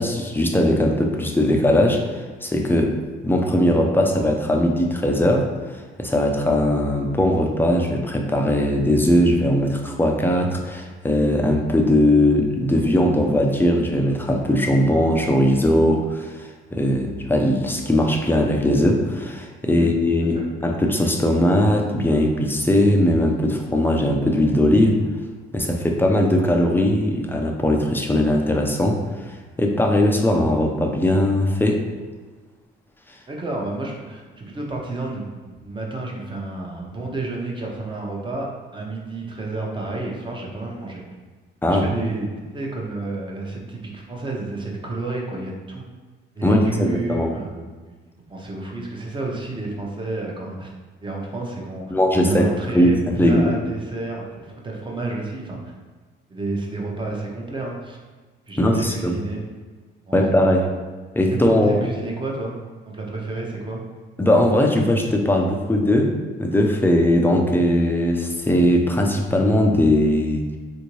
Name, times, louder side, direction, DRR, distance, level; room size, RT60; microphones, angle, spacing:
voice 1, 0.0-3.0 3.2-25.0 25.5-31.9 41.6-41.9 46.4-47.3 51.9-52.5 52.7-53.5 58.6-59.2 60.1-60.7 61.2-61.8 64.2-66.1 66.4-70.6, left 1 dB, 10° left, 1 dB, 0.5 m, -19 dB
voice 2, 33.3-41.0 41.7-45.8 46.3-47.6 47.9-48.0 48.3-50.7 51.0-51.8 52.2-55.7 56.3-58.0 58.5-59.4 60.1-60.2 61.3-62.6 62.9-63.8, right 2 dB, 25° right, -2 dB, 0.8 m, -30 dB
3.4 x 2.7 x 3.0 m, 1.4 s
cardioid pair, 90°, 20 cm